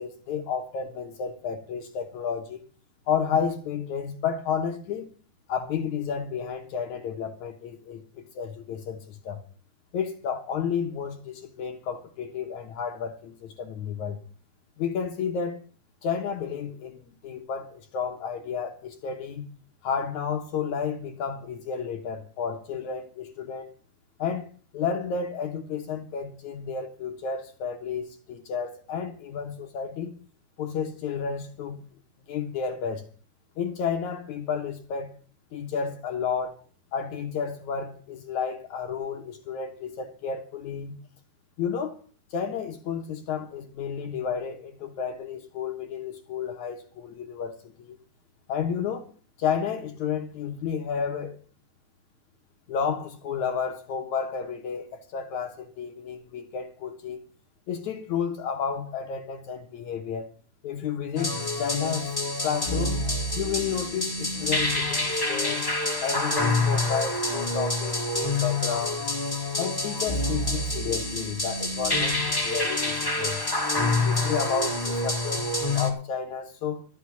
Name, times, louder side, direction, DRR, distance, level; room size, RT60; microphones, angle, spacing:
voice 1, 0.0-2.6 3.1-5.1 5.5-9.4 9.9-14.2 14.8-15.6 16.0-19.5 19.8-23.7 24.2-30.1 30.6-31.8 32.3-33.1 33.6-35.1 35.5-36.6 36.9-41.0 41.6-42.0 42.3-48.0 48.5-49.1 49.4-51.4 52.7-57.2 57.7-60.3 60.6-61.3 61.6-62.2 62.4-63.0 63.4-65.7 66.0-69.0 69.6-73.4 74.0-75.5 75.7-76.9, left 7 dB, 65° left, 2.3 m, -31 dB
sound 1, 61.2-75.9, left 2 dB, 10° left, 1.8 m, -27 dB
13.0 x 6.4 x 8.5 m
omnidirectional pair, 4.0 m